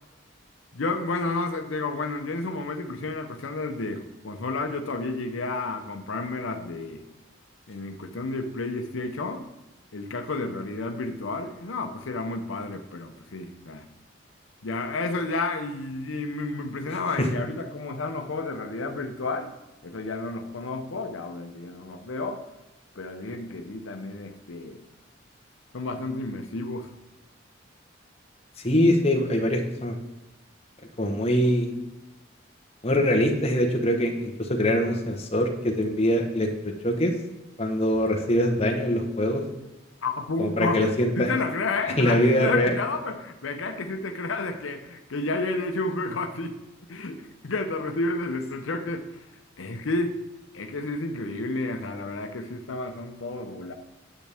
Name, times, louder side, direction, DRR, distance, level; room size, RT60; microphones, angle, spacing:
voice 1, 0.7-7.0 7.7-9.5 9.9-13.8 14.6-19.5 19.8-22.4 22.9-24.8 25.7-26.9 40.0-40.9 41.2-46.6 46.9-49.2 49.6-50.2 50.5-53.7, left 3 dB, 90° left, 6 dB, 0.7 m, -31 dB
voice 2, 28.6-29.9 31.0-31.7 32.8-36.5 36.8-37.1 37.6-39.4 40.4-41.3 42.0-42.7, equal, 30° left, 2 dB, 1.1 m, -23 dB
8.9 x 7.2 x 3.5 m, 1.0 s
head